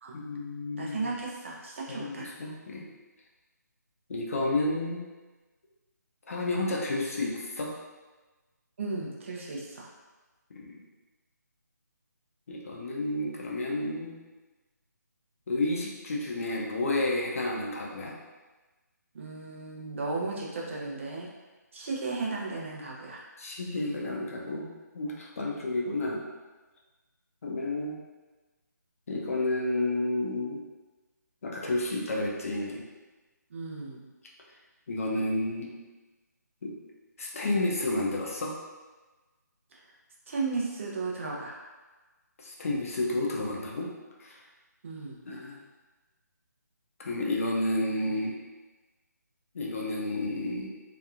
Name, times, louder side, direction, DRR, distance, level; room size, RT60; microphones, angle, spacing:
voice 1, 0.1-1.1 1.9-2.9 4.1-5.0 6.3-7.7 10.5-10.8 12.5-14.2 15.5-18.1 23.4-24.7 24.9-26.2 27.4-28.0 29.1-30.6 31.4-32.8 34.9-35.8 36.6-36.7 37.2-38.6 42.4-43.9 44.2-44.4 45.2-45.6 47.0-48.4 49.5-50.7, left 2 dB, 50° left, -3 dB, 0.6 m, -31 dB
voice 2, 0.7-2.3 8.8-9.9 19.1-21.3 21.7-23.3 33.5-34.1 39.7-39.9 40.3-41.6 44.8-45.2, right 3 dB, 45° right, -2 dB, 0.5 m, -35 dB
2.8 x 2.3 x 2.4 m, 1.2 s
figure-of-eight pair, 150°, 10 cm